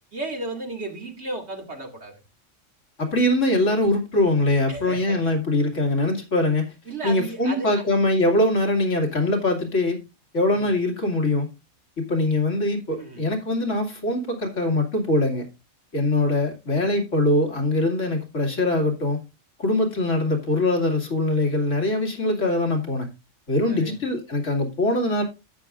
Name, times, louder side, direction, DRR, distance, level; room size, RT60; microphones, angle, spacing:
voice 1, 0.1-2.1 4.7-5.4 6.9-7.7 10.5-10.7 13.0-13.2 23.7-24.0, right 2 dB, 60° right, 2.5 m, -34 dB
voice 2, 3.0-6.7 7.0-10.0 10.3-11.5 12.0-15.4 15.9-19.2 19.6-23.1 23.5-25.2, left 2 dB, 80° left, 2.7 m, -22 dB
12.0 x 8.8 x 2.5 m
omnidirectional pair, 1.3 m